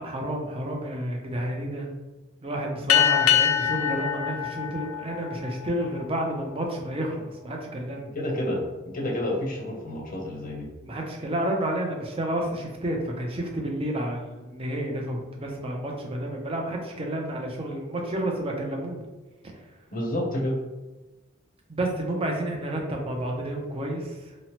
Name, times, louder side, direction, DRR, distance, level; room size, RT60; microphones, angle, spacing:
voice 1, 0.0-1.9 2.4-8.2 10.8-19.0 21.7-24.2, right 1 dB, 25° right, 1 dB, 0.4 m, -30 dB
sound 1, 2.9-5.8, left 9 dB, 85° left, 0.3 m, -24 dB
voice 2, 8.1-10.7 19.9-20.6, left 1 dB, 40° left, -2 dB, 0.6 m, -29 dB
2.9 x 2.0 x 2.8 m, 1.1 s
head